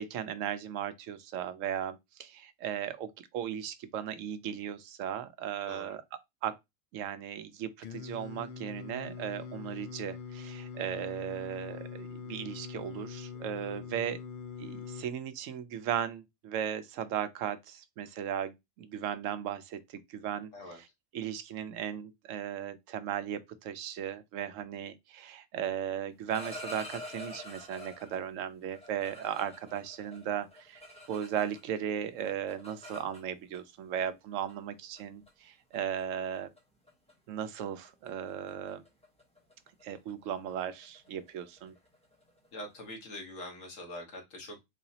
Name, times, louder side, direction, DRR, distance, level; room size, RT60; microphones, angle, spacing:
voice 1, 0.0-6.0 6.4-6.5 6.9-14.2 14.6-20.5 21.1-36.5 37.3-38.8 39.8-41.7, right 9 dB, 80° right, 0.9 m, -36 dB
voice 2, 5.6-5.9 13.6-13.8 20.5-20.8 42.5-44.6, left 1 dB, 85° left, 1.6 m, -44 dB
Singing, 7.8-15.0, left 6 dB, 65° left, 0.5 m, -43 dB
sound 1, 26.1-28.2 28.7-31.8 32.0-33.6 34.5-34.6 35.0-35.3 35.7-36.0 36.3-36.6 36.9-37.1 37.4-42.8, left 1 dB, 5° left, 0.9 m, -47 dB
4.0 x 2.9 x 2.7 m
omnidirectional pair, 1.3 m